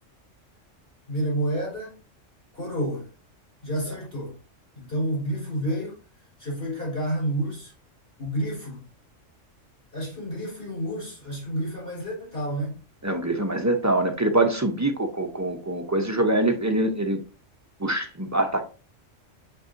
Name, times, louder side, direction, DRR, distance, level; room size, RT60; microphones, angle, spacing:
voice 1, 1.1-1.9 2.5-3.1 3.6-4.4 4.7-6.0 6.4-7.7 8.2-8.8 9.9-12.8, right 1 dB, 50° left, 4.1 m, -29 dB
voice 2, 13.0-17.2 17.8-18.6, right 2 dB, 20° right, 0.4 m, -24 dB
7.1 x 5.3 x 2.6 m
omnidirectional pair, 1.3 m